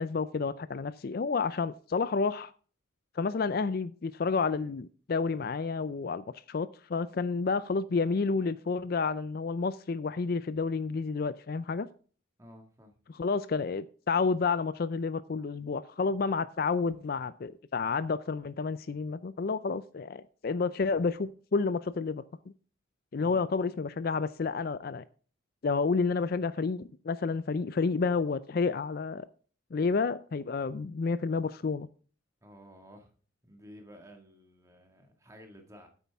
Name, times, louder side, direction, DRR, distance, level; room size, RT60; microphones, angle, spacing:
voice 1, 0.0-2.5 3.2-11.9 13.1-22.2 23.1-25.0 25.6-29.3 29.7-31.9, left 4 dB, 45° left, 0.4 m, -30 dB
voice 2, 12.4-12.9 23.2-23.4 32.4-33.1 33.4-35.9, equal, 15° right, 1.8 m, -52 dB
9.6 x 8.3 x 3.5 m
head